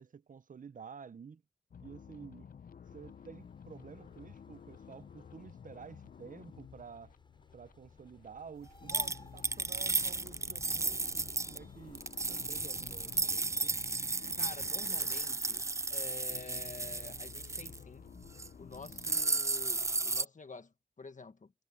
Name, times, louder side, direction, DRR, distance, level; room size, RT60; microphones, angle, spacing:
voice 1, 0.0-1.4 1.8-2.5 2.9-7.1 7.5-13.8 17.6-17.7, right 6 dB, 70° right, 0.6 m, -51 dB
sound 1, 1.7-19.2, left 7 dB, 90° left, 0.6 m, -53 dB
sound 2, 2.8-13.3, left 2 dB, 35° left, 7.4 m, -58 dB
sound 3, 8.9-11.6 11.9-17.8 18.2-18.5 18.7-20.2, right 3 dB, 20° right, 0.3 m, -34 dB
voice 2, 14.4-15.6 15.9-18.1 18.6-21.5, left 4 dB, 60° left, 1.5 m, -48 dB
wide cardioid pair, 55°, 14 cm